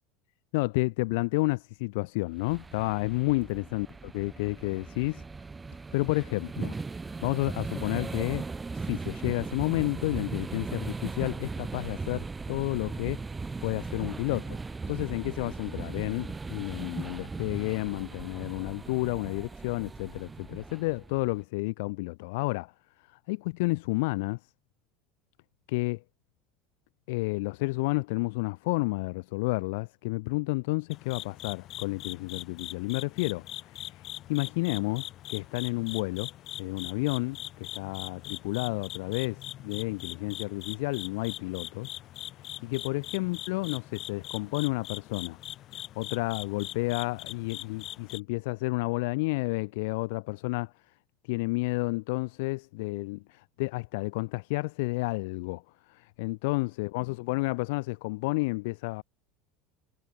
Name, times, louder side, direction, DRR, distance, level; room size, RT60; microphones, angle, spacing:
voice 1, 0.5-3.9 4.1-5.2 5.9-6.7 7.2-8.4 8.7-13.2 13.6-14.6 14.9-22.7 23.3-24.4 25.7-26.0 27.1-36.3 36.6-41.9 42.6-45.4 45.7-50.7 51.2-55.6 55.9-59.0, left 25 dB, 65° left, 0.8 m, -31 dB
sound 1, 2.4-21.4, right 4 dB, 20° right, 1.4 m, -38 dB
sound 2, 30.9-48.2, left 13 dB, 50° left, 2.4 m, -42 dB
hypercardioid pair, 75°, 0 cm